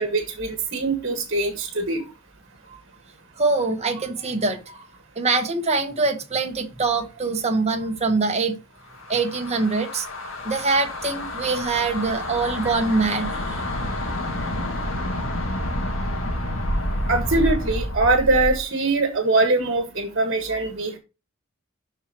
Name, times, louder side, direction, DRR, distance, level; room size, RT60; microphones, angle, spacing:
voice 1, 0.0-2.0 17.1-21.0, right 2 dB, 60° right, 1.7 m, -22 dB
voice 2, 3.4-4.9 5.1-8.6 9.1-10.1 10.4-13.6 16.7-16.8, right 3 dB, 35° right, 1.4 m, -24 dB
sound 1, 8.9-18.6, left 1 dB, 90° left, 1.9 m, -28 dB
12.5 x 4.5 x 3.0 m
head